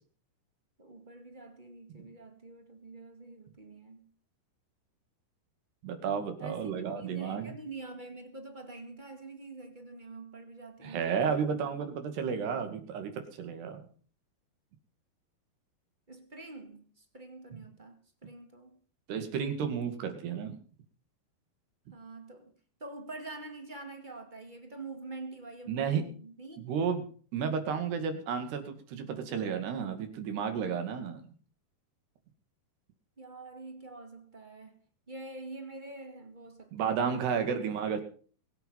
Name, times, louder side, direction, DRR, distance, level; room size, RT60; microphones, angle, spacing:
voice 1, 0.8-4.1 6.4-12.0 16.1-18.8 21.9-22.5 22.8-26.9 33.2-34.8 35.1-37.0 37.4-37.6, right 2 dB, 25° right, 1.1 m, -46 dB
voice 2, 5.8-7.5 10.8-13.9 17.5-17.6 19.1-20.6 25.7-26.0 26.6-27.1 27.3-31.2 36.7-38.0, right 6 dB, 85° right, 4.4 m, -32 dB
22.5 x 8.6 x 5.6 m
omnidirectional pair, 4.6 m